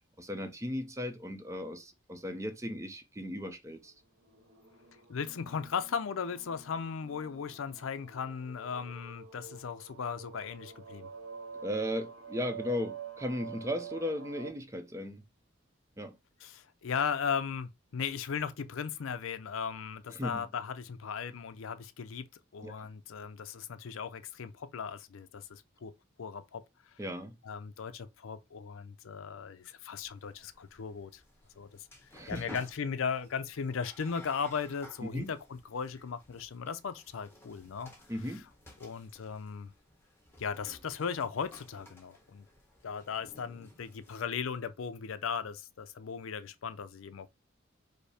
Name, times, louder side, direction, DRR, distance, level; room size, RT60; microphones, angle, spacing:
voice 1, 0.0-3.9 11.6-15.2 16.0-16.2 20.1-20.5 22.6-22.9 27.0-27.3 32.1-32.6 35.0-35.3 38.1-38.4, equal, 15° right, 0.6 m, -36 dB
sound 1, 4.2-14.5, right 6 dB, 75° right, 1.0 m, -48 dB
voice 2, 5.1-11.1 16.4-22.3 22.5-25.9 26.2-26.6 27.4-31.2 31.6-31.9 32.3-37.9 38.8-39.7 40.4-42.4 42.8-47.3, left 6 dB, 75° left, 0.5 m, -37 dB
sound 2, 30.0-44.2, left 2 dB, 10° left, 1.2 m, -56 dB
5.2 x 2.1 x 4.8 m
head